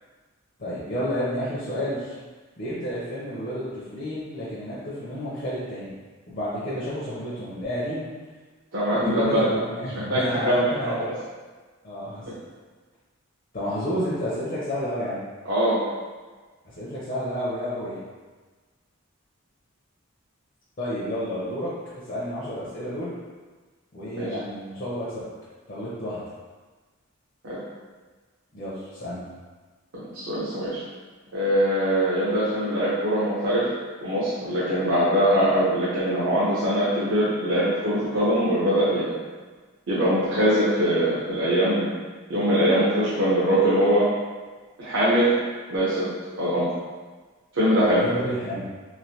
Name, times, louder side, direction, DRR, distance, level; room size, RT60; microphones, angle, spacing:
voice 1, 0.6-2.1 2.6-6.0 6.3-8.1 8.9-11.1 11.8-12.3 13.5-15.2 16.8-18.0 20.8-21.7 22.1-23.1 23.9-25.3 25.7-26.2 28.5-29.2 47.8-48.6, equal, 45° left, -9 dB, 0.6 m, -30 dB
voice 2, 8.7-9.5 9.9-11.1 12.2-12.3 15.4-15.8 24.2-24.3 27.4-27.6 29.9-30.8 31.3-33.7 34.0-39.1 39.9-41.9 42.3-44.1 44.8-45.3 45.7-46.1 46.4-46.6 47.5-48.0, equal, 65° right, -10 dB, 0.7 m, -22 dB
3.2 x 2.5 x 2.8 m, 1.4 s
head